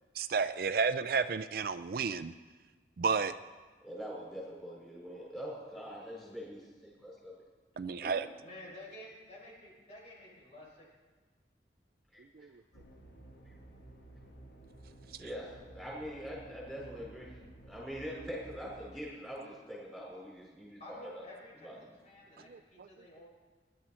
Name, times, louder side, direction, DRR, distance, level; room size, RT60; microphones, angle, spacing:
voice 1, 0.2-2.3 3.0-3.3 7.8-8.3 12.4-12.5 22.5-22.9, right 5 dB, 55° right, 12 dB, 0.4 m, -32 dB
voice 2, 3.8-7.4 8.0-8.1 12.1-12.2 15.2-21.2 21.6-21.7 22.3-22.4, equal, ahead, -6 dB, 5.0 m, -44 dB
voice 3, 8.4-10.9 20.8-23.3, left 1 dB, 40° left, -4 dB, 5.4 m, -51 dB
sound 1, 12.7-18.9, right 1 dB, 65° left, 1.9 m, -54 dB
21.5 x 11.5 x 4.3 m, 1.4 s
head